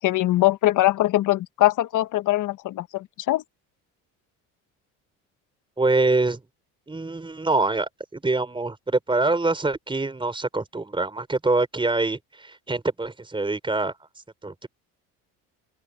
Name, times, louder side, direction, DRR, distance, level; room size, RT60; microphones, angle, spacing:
voice 1, 0.0-3.4, left 16 dB, 55° left, 1.2 m, -22 dB
voice 2, 5.8-6.4 6.9-13.9 14.4-14.7, right 3 dB, 15° right, 4.4 m, -25 dB
open air
supercardioid pair, 85°, 38 cm